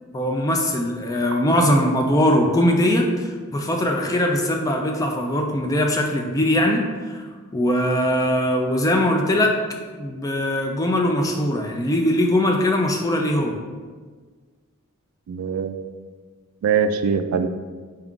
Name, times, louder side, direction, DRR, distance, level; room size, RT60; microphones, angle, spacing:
voice 1, 0.1-7.2 7.5-9.6 9.9-13.6, left 1 dB, 15° left, 2 dB, 0.3 m, -21 dB
voice 2, 15.3-15.8 16.6-17.5, right 6 dB, 85° right, 8 dB, 0.3 m, -22 dB
4.3 x 2.4 x 3.6 m, 1.5 s
head